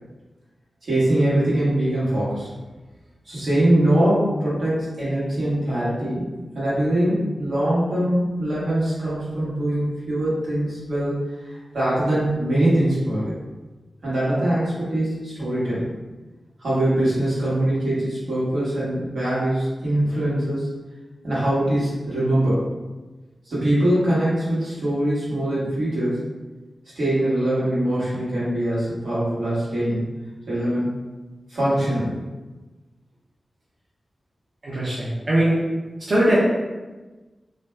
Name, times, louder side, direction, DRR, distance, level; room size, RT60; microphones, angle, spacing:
voice 1, 0.8-2.5 3.3-6.2 6.5-13.3 14.0-15.9 16.6-20.7 21.2-22.6 23.4-26.3 27.0-30.0 30.5-31.0 31.5-32.1, right 1 dB, 85° right, -10 dB, 1.3 m, -22 dB
voice 2, 34.6-35.6 36.1-36.4, right 1 dB, 50° right, -8 dB, 0.6 m, -20 dB
2.6 x 2.1 x 3.2 m, 1.2 s
wide cardioid pair, 105°, 0 cm